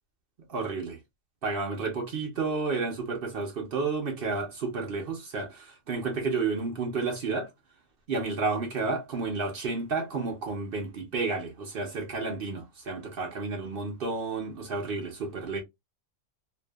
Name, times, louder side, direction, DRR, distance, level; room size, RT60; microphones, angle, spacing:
voice 1, 0.5-1.0 1.4-7.5 8.1-15.6, right 4 dB, 50° right, 0.8 m, -31 dB
2.7 x 2.3 x 2.2 m
omnidirectional pair, 1.4 m